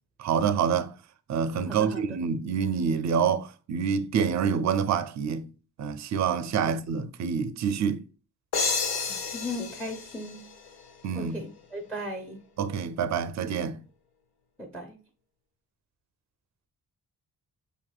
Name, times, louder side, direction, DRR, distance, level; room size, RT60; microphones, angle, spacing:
voice 1, 0.2-0.9 1.3-5.5 5.8-8.0 11.0-11.5 12.6-13.8, right 7 dB, 50° right, 0.4 m, -27 dB
voice 2, 1.7-2.2 6.6-6.7 9.0-10.5 11.1-12.4 14.6-15.0, left 1 dB, 5° left, 0.5 m, -37 dB
sound 1, 8.5-11.2, left 5 dB, 85° left, 0.8 m, -31 dB
5.8 x 2.7 x 2.3 m
wide cardioid pair, 135°, 37 cm